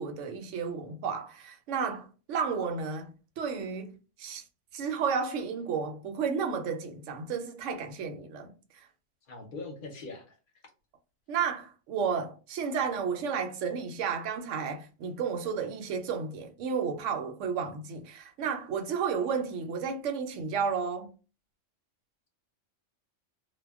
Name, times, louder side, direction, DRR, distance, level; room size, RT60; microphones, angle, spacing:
voice 1, 0.0-3.9 4.2-4.4 4.7-8.9 11.3-21.1, right 6 dB, 75° right, 0.9 m, -32 dB
voice 2, 9.3-10.4, left 3 dB, 50° left, 0.8 m, -41 dB
2.2 x 2.1 x 3.4 m
omnidirectional pair, 1.3 m